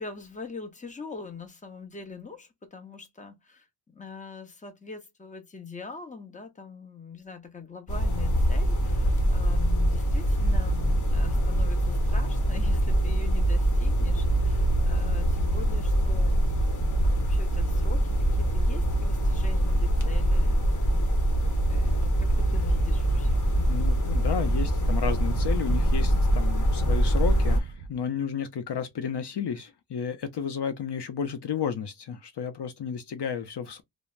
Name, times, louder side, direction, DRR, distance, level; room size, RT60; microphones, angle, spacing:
voice 1, 0.0-3.7 3.9-16.6 17.0-21.2 21.7-23.4, left 4 dB, 15° left, 0.7 m, -43 dB
sound 1, 7.9-27.6, right 1 dB, 40° left, 1.0 m, -24 dB
Wind, 23.3-28.0, right 5 dB, 60° right, 0.7 m, -38 dB
voice 2, 23.7-33.8, left 7 dB, 60° left, 0.6 m, -32 dB
3.1 x 2.0 x 2.4 m
wide cardioid pair, 90°, 46 cm